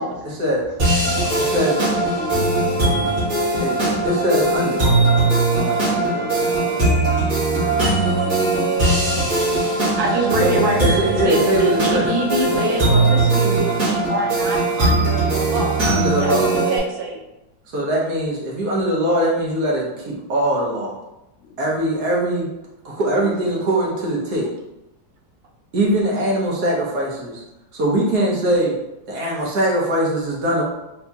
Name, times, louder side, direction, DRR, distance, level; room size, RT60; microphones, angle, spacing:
voice 1, 0.0-4.1 4.7-7.0 7.4-8.8 9.2-10.0 21.4-21.8 23.2-23.6, left 3 dB, 65° left, -6 dB, 0.7 m, -36 dB
sound 1, 0.8-16.8, right 2 dB, 50° right, 2.0 m, -20 dB
voice 2, 1.4-1.8 3.6-3.7 4.0-4.8 10.3-12.1 15.8-16.5 17.7-21.0 21.6-22.5 22.8-24.5 25.7-27.4 27.7-28.8 29.1-30.6, right 1 dB, 65° right, -3 dB, 1.4 m, -21 dB
voice 3, 10.0-17.2, right 3 dB, 80° right, -1 dB, 1.4 m, -25 dB
4.1 x 2.7 x 2.3 m, 0.93 s
omnidirectional pair, 2.0 m